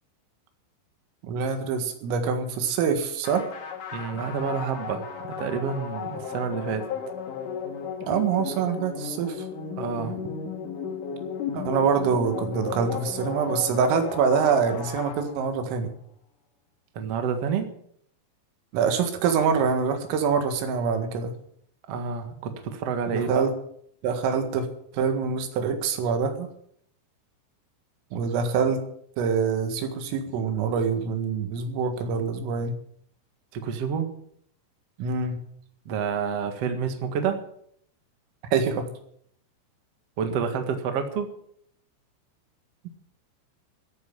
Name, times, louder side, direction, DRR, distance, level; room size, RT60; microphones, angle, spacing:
voice 1, 1.2-3.4 8.1-9.5 11.5-15.9 18.7-21.3 23.1-23.5 24.0-24.7 24.9-26.5 28.1-28.8 29.2-32.8 35.0-35.4 38.5-38.9, right 6 dB, 90° right, 7 dB, 4.5 m, -25 dB
sound 1, 3.2-15.8, left 6 dB, 50° left, 3.0 m, -35 dB
voice 2, 3.9-6.9 9.8-10.2 16.9-17.7 21.9-23.5 33.5-34.1 35.8-37.4 40.2-41.3, right 6 dB, 70° right, 6 dB, 1.4 m, -29 dB
14.5 x 9.0 x 8.8 m, 0.67 s
omnidirectional pair, 5.7 m